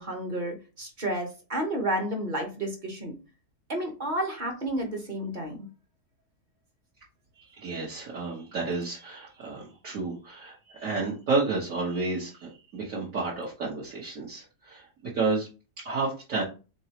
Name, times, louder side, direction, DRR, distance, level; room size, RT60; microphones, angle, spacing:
voice 1, 0.0-3.1 3.7-5.7, right 1 dB, 35° right, 3 dB, 1.1 m, -31 dB
voice 2, 7.5-14.8 15.1-15.5 15.8-16.4, right 3 dB, 55° right, -6 dB, 1.6 m, -31 dB
4.6 x 3.9 x 2.9 m, 0.32 s
omnidirectional pair, 1.7 m